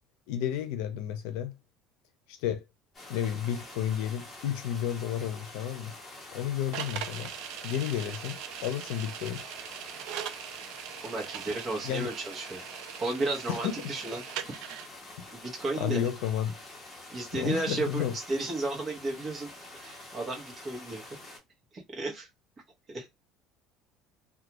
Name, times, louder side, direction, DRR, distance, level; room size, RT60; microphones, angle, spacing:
voice 1, 0.3-1.5 2.3-2.6 3.1-5.9 6.3-7.3 7.6-9.4 11.8-12.1 13.5-13.9 15.7-16.5 17.3-18.2, left 10 dB, 80° left, 0.5 m, -32 dB
sound 1, 2.9-21.4, left 2 dB, 20° left, 1.0 m, -47 dB
sound 2, 6.7-14.9, right 10 dB, 70° right, 0.3 m, -41 dB
voice 2, 11.0-12.6 13.0-14.2 14.5-14.6 15.4-16.1 17.1-21.0 21.7-22.3 22.9-23.1, right 2 dB, 25° right, 0.9 m, -33 dB
2.4 x 2.3 x 3.0 m
cardioid pair, 165°, 0 cm